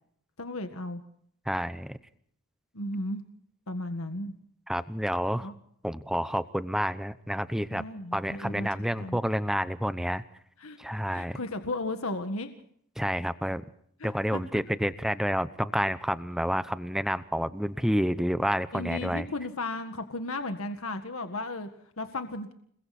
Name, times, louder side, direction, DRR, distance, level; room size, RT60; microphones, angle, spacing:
voice 1, 0.4-1.0 2.7-3.2 3.7-4.3 5.4-5.5 7.7-9.2 10.6-10.8 11.1-12.6 14.0-14.4 18.7-21.7 22.0-22.5, left 2 dB, 70° left, 7 dB, 1.8 m, -35 dB
voice 2, 1.5-2.0 4.7-5.5 5.8-7.8 8.1-10.2 10.8-11.4 13.0-13.6 14.0-19.3, equal, ahead, 13 dB, 0.8 m, -29 dB
29.5 x 21.0 x 4.3 m, 0.65 s
head